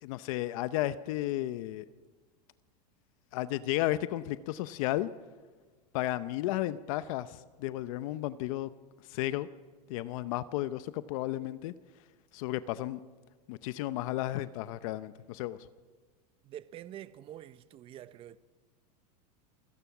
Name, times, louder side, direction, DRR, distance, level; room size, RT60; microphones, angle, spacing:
voice 1, 0.0-1.9 3.3-5.1 5.9-8.7 9.1-9.5 9.9-11.7 12.3-13.0 13.5-15.7, left 15 dB, 55° left, 0.7 m, -33 dB
voice 2, 16.4-18.4, right 12 dB, 25° right, 0.6 m, -46 dB
28.5 x 16.5 x 6.0 m
supercardioid pair, 150°, 21 cm